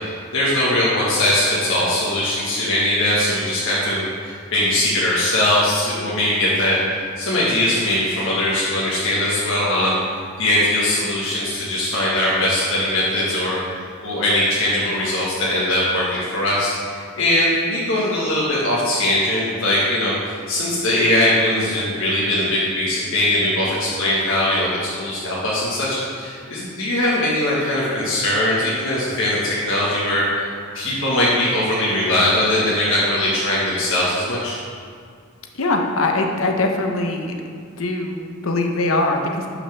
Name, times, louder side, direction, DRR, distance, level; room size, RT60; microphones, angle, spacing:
voice 1, 0.0-6.8 7.2-10.0 10.4-13.6 14.0-30.5 30.7-34.5, left 1 dB, 70° left, -8 dB, 1.6 m, -20 dB
voice 2, 35.5-37.3 37.8-39.5, left 2 dB, 85° left, 2 dB, 1.0 m, -22 dB
12.0 x 5.8 x 3.6 m, 2.1 s
head